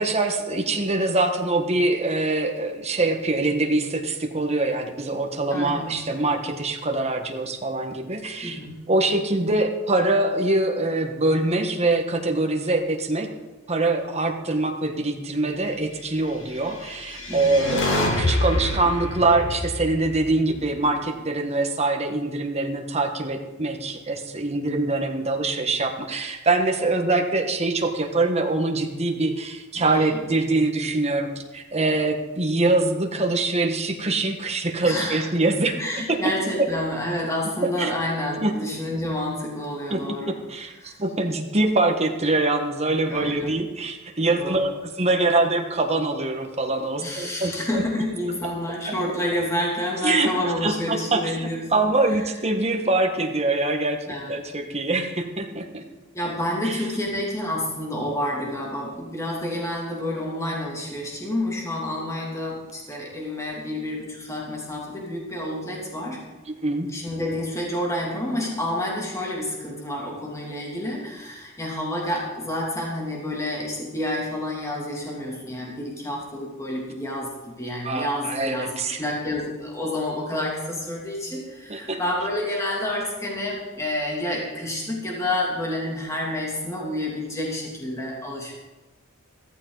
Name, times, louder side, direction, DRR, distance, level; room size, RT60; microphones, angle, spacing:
voice 1, 0.0-8.6 8.9-13.3 13.7-35.8 36.1-36.2 37.8-37.9 38.4-38.5 39.9-40.0 40.5-40.7 41.0-47.8 48.7-48.8 50.0-50.3 50.6-54.0 54.3-55.8 56.6-56.8 66.5-66.9 77.8-79.0 81.7-82.0, right 2 dB, 30° right, 4 dB, 1.5 m, -24 dB
voice 2, 5.5-6.0 8.4-8.7 17.3-17.6 29.7-30.2 34.8-35.3 35.8-40.4 40.8-41.0 43.1-43.5 44.3-44.7 47.0-52.3 54.1-54.4 56.1-66.2 66.9-78.7 79.0-88.6, left 1 dB, 15° left, -3 dB, 2.7 m, -29 dB
sound 1, 16.7-21.0, left 1 dB, 60° left, 2.5 m, -27 dB
15.5 x 14.0 x 4.0 m, 1.2 s
head